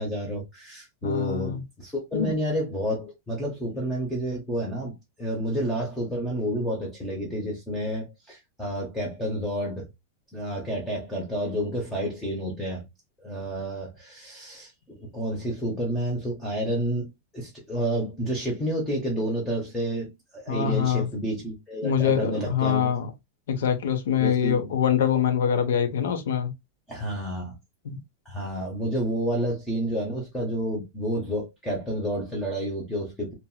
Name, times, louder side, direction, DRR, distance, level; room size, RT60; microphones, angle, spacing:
voice 1, 0.0-9.9 10.3-12.8 13.2-22.9 24.2-24.7 26.9-27.6 28.3-33.3, equal, 5° left, 0.7 m, -30 dB
voice 2, 1.0-1.6 2.1-2.4 20.5-21.1 21.8-23.1 23.5-26.5 27.8-28.0, left 8 dB, 85° left, 0.8 m, -24 dB
2.9 x 2.7 x 2.2 m
supercardioid pair, 175°, 0 cm